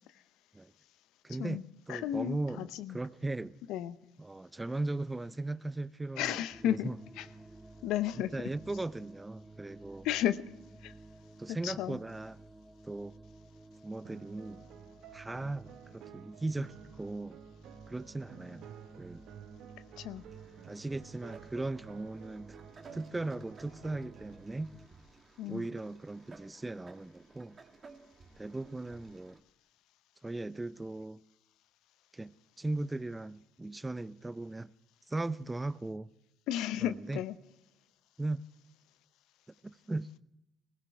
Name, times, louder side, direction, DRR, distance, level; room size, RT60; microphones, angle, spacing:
voice 1, 1.2-1.6 1.9-3.6 4.2-7.0 8.2-10.1 11.4-12.4 12.8-13.1 13.8-14.7 15.1-17.4 17.9-18.7 19.0-19.2 20.7-22.6 22.9-24.7 25.5-27.6 28.4-29.4 30.2-31.2 32.1-34.7 35.1-36.1 36.8-37.2 38.2-38.5 39.6-40.1, right 2 dB, 15° right, 0.6 m, -38 dB
voice 2, 1.9-3.0 3.7-4.0 6.2-6.9 7.2-7.3 7.8-8.3 10.0-10.4 10.8-10.9 11.5-12.0 20.0-20.2 25.4-25.7 36.5-37.3, left 12 dB, 70° left, 0.7 m, -33 dB
sound 1, 6.5-24.9, right 2 dB, ahead, 1.2 m, -54 dB
sound 2, 14.0-24.5, right 10 dB, 65° right, 0.8 m, -53 dB
sound 3, 20.1-29.4, right 4 dB, 35° right, 2.1 m, -57 dB
20.0 x 15.5 x 3.4 m
hypercardioid pair, 55°, 0 cm